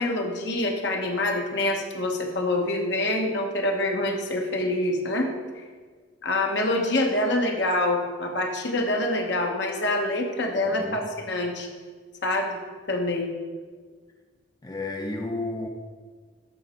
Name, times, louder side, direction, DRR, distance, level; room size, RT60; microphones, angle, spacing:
voice 1, 0.0-5.3 6.2-11.7 12.2-12.6 12.9-13.3, left 1 dB, 70° left, 2 dB, 1.1 m, -26 dB
voice 2, 10.6-11.1 14.6-15.7, left 2 dB, 20° left, 3 dB, 0.5 m, -32 dB
12.0 x 4.1 x 4.4 m, 1.5 s
head